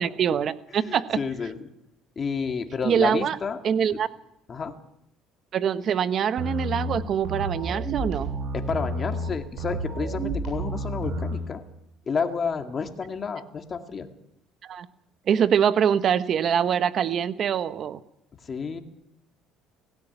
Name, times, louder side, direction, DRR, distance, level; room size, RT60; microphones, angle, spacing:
voice 1, 0.0-1.2 2.8-3.4 3.6-4.1 5.5-8.3 14.6-14.9 15.3-18.0, right 8 dB, 50° right, 13 dB, 1.1 m, -24 dB
voice 2, 0.7-1.7 2.2-3.6 4.5-4.7 8.5-11.6 12.1-14.1 18.4-18.8, left 5 dB, 35° left, 6 dB, 2.1 m, -30 dB
sound 1, 6.4-11.4, right 1 dB, 70° right, 7.9 m, -30 dB
17.0 x 17.0 x 9.2 m, 0.80 s
cardioid pair, 105°, 0 cm